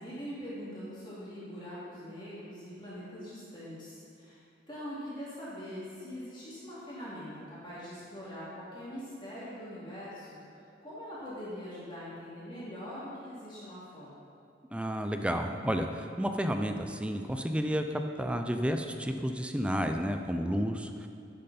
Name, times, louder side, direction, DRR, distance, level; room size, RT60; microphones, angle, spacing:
voice 1, 0.0-4.4 4.7-10.4 10.8-14.1, equal, 25° left, -9 dB, 2.7 m, -42 dB
voice 2, 14.7-21.1, equal, 5° right, 6 dB, 0.5 m, -31 dB
11.0 x 8.9 x 4.3 m, 2.5 s
head